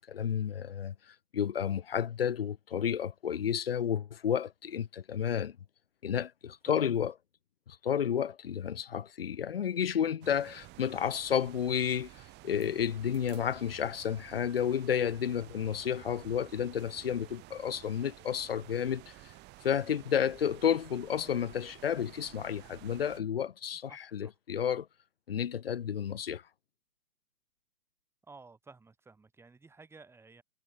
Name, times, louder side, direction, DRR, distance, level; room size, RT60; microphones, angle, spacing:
voice 1, 0.0-5.6 6.0-7.1 7.7-19.3 19.6-24.9 25.3-26.4, left 8 dB, 35° left, 0.7 m, -31 dB
voice 2, 6.7-7.0 23.7-24.3 28.2-30.4, right 4 dB, 5° right, 5.9 m, -55 dB
sound 1, 10.2-23.2, right 21 dB, 20° right, 5.9 m, -52 dB
figure-of-eight pair, 135°, 49 cm